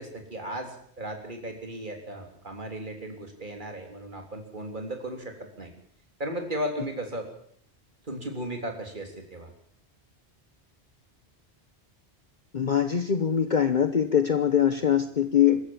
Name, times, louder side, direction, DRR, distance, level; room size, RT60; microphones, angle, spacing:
voice 1, 0.0-5.7 6.2-7.3 8.0-9.5, right 1 dB, 45° right, 3 dB, 3.7 m, -36 dB
voice 2, 12.5-15.6, left 9 dB, 45° left, 9 dB, 1.1 m, -23 dB
25.0 x 14.5 x 7.3 m, 0.63 s
omnidirectional pair, 1.1 m